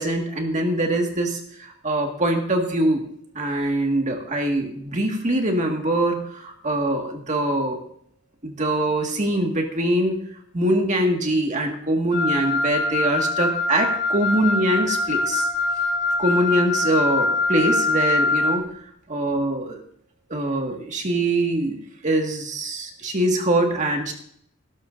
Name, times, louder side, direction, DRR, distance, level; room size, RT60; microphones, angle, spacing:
voice 1, 0.0-3.1 3.4-7.8 8.4-10.2 10.5-15.5 16.2-18.7 19.1-19.8 20.3-21.8 22.0-24.1, right 1 dB, 35° right, 2 dB, 1.9 m, -23 dB
Wind instrument woodwind instrument, 12.1-18.6, left 3 dB, 60° left, 5.6 m, -23 dB
18.0 x 12.0 x 2.6 m, 0.66 s
head